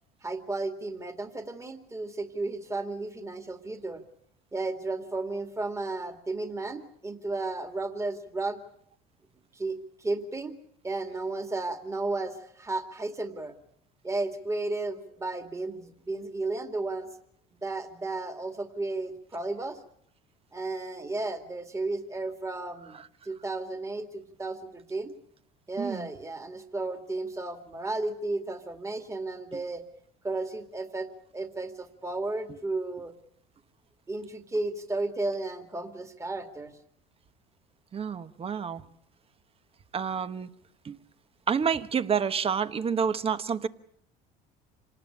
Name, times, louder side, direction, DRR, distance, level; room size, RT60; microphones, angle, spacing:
voice 1, 0.2-4.0 4.5-8.6 9.5-10.5 10.8-13.5 14.0-17.1 17.6-19.8 20.5-23.0 23.2-25.1 25.7-29.8 30.2-33.1 34.1-36.7, right 2 dB, 15° right, 2.3 m, -33 dB
voice 2, 25.8-26.1 29.5-29.6 37.9-38.8 39.9-40.5 40.8-41.0 41.5-43.7, right 6 dB, 30° right, 1.3 m, -28 dB
26.5 x 19.0 x 8.7 m
supercardioid pair, 100°, 19 cm